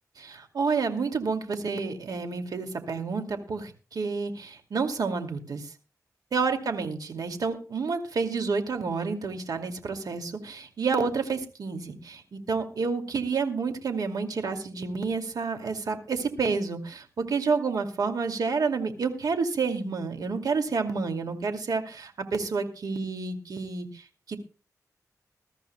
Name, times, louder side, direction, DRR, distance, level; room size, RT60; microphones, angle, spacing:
voice 1, 0.2-5.7 6.3-24.4, right 4 dB, 80° right, 6 dB, 2.4 m, -29 dB
21.5 x 13.5 x 2.3 m, 0.33 s
wide cardioid pair, 85°, 6 cm